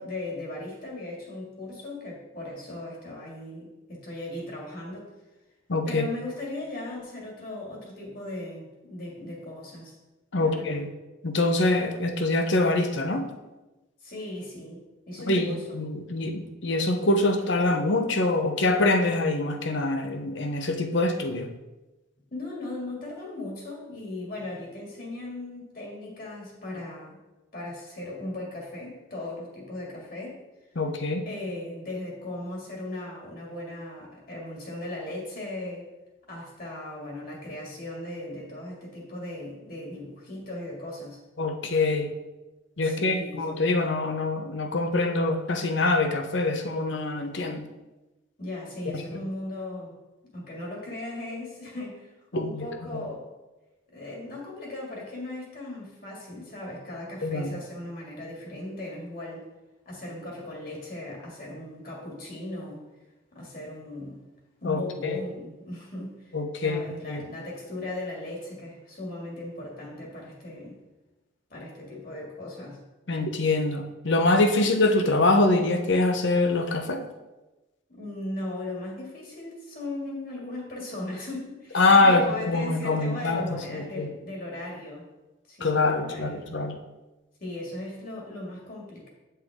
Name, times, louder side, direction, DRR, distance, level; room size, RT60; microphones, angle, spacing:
voice 1, 0.0-5.1 5.9-10.0 10.4-10.9 14.0-15.8 22.3-27.2 27.5-30.5 31.2-35.9 36.3-41.2 42.8-43.5 48.4-49.9 50.3-53.3 53.9-59.5 59.9-62.8 63.3-64.2 64.6-70.8 71.5-72.8 77.9-85.1 85.5-86.5 87.4-89.1, left 1 dB, 45° left, -3 dB, 2.3 m, -37 dB
voice 2, 5.7-6.0 10.3-10.9 11.2-13.3 15.3-21.5 30.8-31.2 41.4-42.1 42.8-47.7 52.3-53.0 57.2-57.5 64.6-65.2 66.3-66.8 67.1-67.2 73.1-77.0 81.7-83.4 83.7-84.1 85.6-86.7, left 2 dB, 65° left, 6 dB, 0.8 m, -24 dB
9.3 x 5.6 x 3.7 m, 1.1 s
head